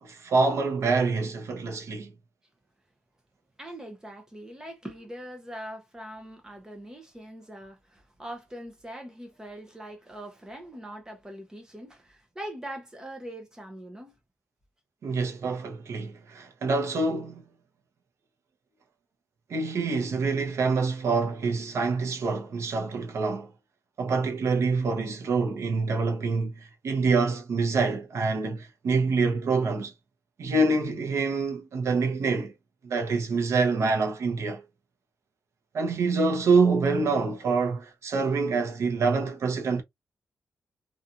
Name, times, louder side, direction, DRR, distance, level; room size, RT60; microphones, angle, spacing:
voice 1, 0.0-2.1 15.0-17.5 19.5-23.5 24.0-29.9 30.4-32.5 32.8-34.6 35.7-39.8, right 4 dB, 60° right, 0.8 m, -26 dB
voice 2, 3.6-14.2, right 1 dB, 10° right, 0.6 m, -42 dB
2.7 x 2.4 x 2.4 m
wide cardioid pair, 170°, 5 cm